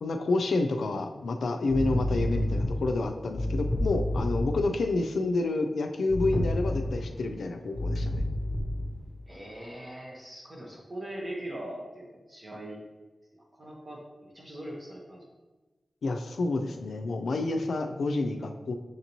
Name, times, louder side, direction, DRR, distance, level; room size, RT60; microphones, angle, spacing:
voice 1, 0.0-8.3 16.0-18.7, left 3 dB, 90° left, 4 dB, 0.3 m, -29 dB
sound 1, 1.7-4.7 6.1-7.2 7.7-9.0, left 1 dB, 45° left, 0.7 m, -29 dB
voice 2, 9.3-12.8 13.3-15.4, right 1 dB, 35° right, -3 dB, 0.8 m, -41 dB
6.4 x 2.6 x 2.9 m, 1.2 s
wide cardioid pair, 75°, 0 cm